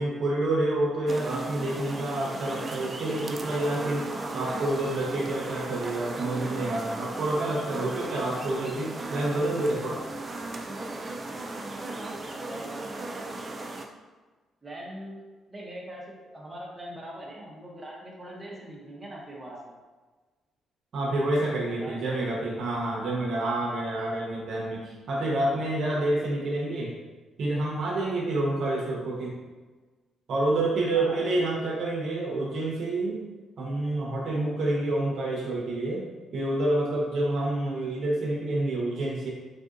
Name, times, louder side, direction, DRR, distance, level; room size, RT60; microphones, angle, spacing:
voice 1, 0.0-10.0 20.9-26.9 27.4-29.3 30.3-33.2 33.6-36.1 36.3-39.3, right 2 dB, 65° right, -3 dB, 0.7 m, -28 dB
sound 1, 1.1-13.9, right 2 dB, 35° right, 0.3 m, -36 dB
voice 2, 12.3-13.0 14.6-15.2 15.5-19.7 21.8-22.4 23.3-23.6 30.9-31.5, right 1 dB, 20° right, -3 dB, 0.7 m, -42 dB
3.5 x 2.6 x 2.4 m, 1.3 s
cardioid pair, 90°, 0 cm